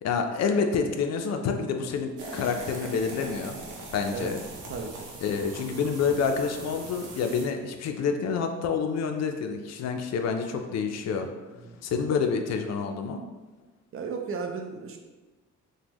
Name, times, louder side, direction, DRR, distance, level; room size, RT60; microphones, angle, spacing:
voice 1, 0.0-3.6 3.9-4.4 5.2-11.3 11.8-13.2, left 5 dB, 60° left, 5 dB, 0.4 m, -28 dB
sound 1, 2.2-7.5, right 2 dB, 85° right, 0.7 m, -41 dB
voice 2, 4.7-5.1 11.6-11.8 13.9-15.0, right 5 dB, 45° right, 3 dB, 0.5 m, -34 dB
3.5 x 2.1 x 2.9 m, 1.2 s
cardioid pair, 90°, 30 cm